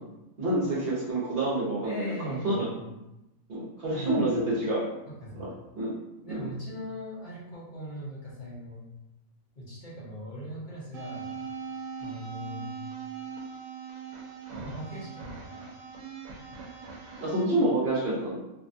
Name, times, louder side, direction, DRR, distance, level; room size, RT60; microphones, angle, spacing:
voice 1, 0.4-2.7 3.5-4.8 5.4-5.5 5.7-5.9 6.3-6.5 17.2-18.4, right 1 dB, 50° right, -7 dB, 1.0 m, -28 dB
voice 2, 1.8-2.8 3.9-4.4 5.2-5.4 6.2-8.8 9.6-11.4 12.0-12.7 14.6-15.7, equal, 40° left, -8 dB, 0.8 m, -40 dB
sound 1, 10.9-17.4, right 5 dB, 75° right, 1.0 m, -40 dB
2.8 x 2.2 x 2.6 m, 0.93 s
omnidirectional pair, 1.5 m